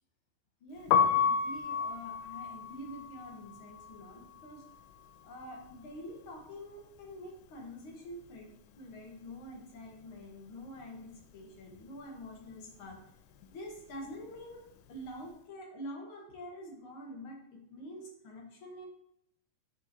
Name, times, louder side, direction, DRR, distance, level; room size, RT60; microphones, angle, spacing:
voice 1, 0.6-4.6 5.2-8.5 8.7-13.0 13.5-14.6 14.9-18.9, equal, 55° left, 0 dB, 1.6 m, -46 dB
Piano, 0.8-6.7 7.0-8.6 8.8-15.3, left 7 dB, 85° left, 2.1 m, -33 dB
7.7 x 5.4 x 2.7 m, 0.73 s
omnidirectional pair, 3.6 m